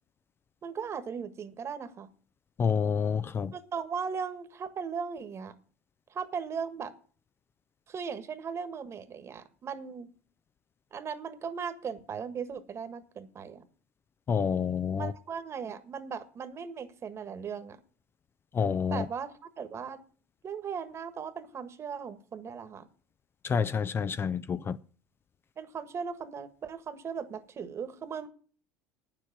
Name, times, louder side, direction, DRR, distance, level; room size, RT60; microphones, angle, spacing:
voice 1, 0.6-2.1 3.5-5.5 6.1-6.9 7.9-10.1 10.9-13.6 15.0-17.8 18.9-20.0 20.4-22.9 25.6-28.3, right 6 dB, 35° right, 1.5 m, -38 dB
voice 2, 2.6-3.5 14.3-15.1 18.5-19.1 23.4-24.8, left 6 dB, 30° left, 0.5 m, -28 dB
9.4 x 7.5 x 8.4 m
supercardioid pair, 90°, 8 cm